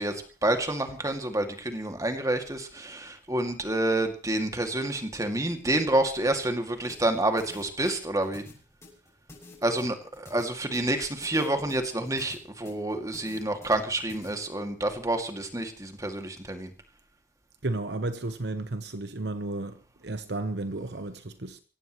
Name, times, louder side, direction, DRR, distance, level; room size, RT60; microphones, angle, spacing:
voice 1, 0.0-8.4 9.6-16.7, right 1 dB, 20° right, 2.4 m, -28 dB
sound 1, 6.9-14.3, left 2 dB, 15° left, 7.1 m, -50 dB
voice 2, 17.6-21.6, right 2 dB, 60° right, 1.1 m, -33 dB
24.0 x 17.0 x 3.2 m
head